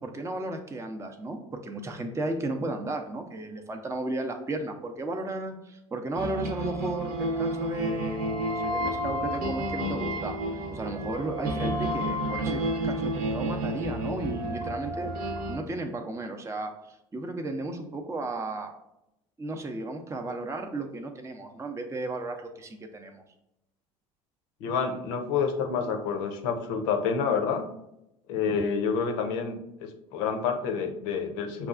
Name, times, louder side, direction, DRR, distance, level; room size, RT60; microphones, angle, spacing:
voice 1, 0.0-10.3 10.7-18.7 19.4-23.2, right 2 dB, 15° right, 3 dB, 0.6 m, -34 dB
sound 1, 6.1-15.6, right 1 dB, 60° right, 0.9 m, -30 dB
voice 2, 24.6-27.7 28.3-31.7, left 6 dB, 70° left, 5 dB, 0.6 m, -28 dB
5.5 x 2.3 x 2.4 m, 0.84 s
hypercardioid pair, 70°, 17 cm